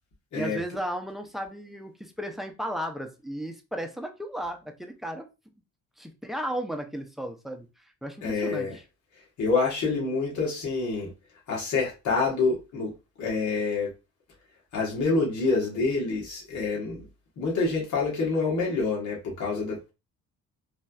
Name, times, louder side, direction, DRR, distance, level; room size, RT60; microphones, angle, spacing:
voice 1, 0.3-5.3 6.0-7.7 8.0-8.8, equal, ahead, 0.6 m, -34 dB
voice 2, 8.2-8.8 9.4-11.1 11.5-12.9 13.2-13.9 14.7-17.1 17.4-19.9, left 4 dB, 70° left, 1.4 m, -27 dB
3.2 x 2.6 x 2.3 m
cardioid pair, 90°, 30 cm